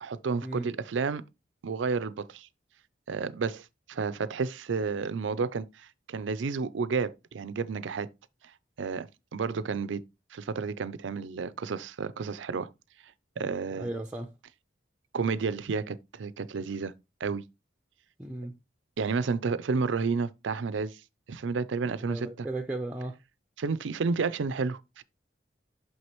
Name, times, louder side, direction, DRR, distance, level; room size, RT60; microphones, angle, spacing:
voice 1, 0.0-1.2 1.6-2.5 3.1-8.1 8.8-10.0 10.3-12.7 13.4-13.9 15.1-16.9 17.2-17.4 19.0-21.0 21.3-22.5 23.6-25.0, right 4 dB, 90° right, 0.5 m, -31 dB
voice 2, 13.8-14.3 18.2-18.5 22.1-23.2, right 1 dB, 5° right, 0.5 m, -35 dB
6.2 x 5.8 x 3.0 m
head